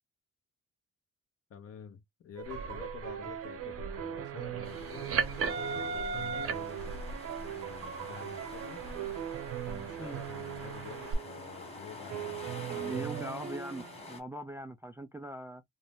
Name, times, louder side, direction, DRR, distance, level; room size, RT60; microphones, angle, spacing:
voice 1, 1.5-7.0 7.4-8.8 9.7-13.1, left 7 dB, 50° left, 0.8 m, -49 dB
sound 1, 2.4-11.1, right 5 dB, 50° right, 0.7 m, -39 dB
sound 2, 2.4-11.7 12.1-14.0, right 10 dB, 80° right, 0.9 m, -40 dB
sound 3, 4.6-14.2, left 2 dB, 20° left, 1.4 m, -48 dB
voice 2, 12.6-15.6, right 1 dB, 10° right, 0.3 m, -41 dB
2.6 x 2.1 x 3.4 m
cardioid pair, 90°, 30 cm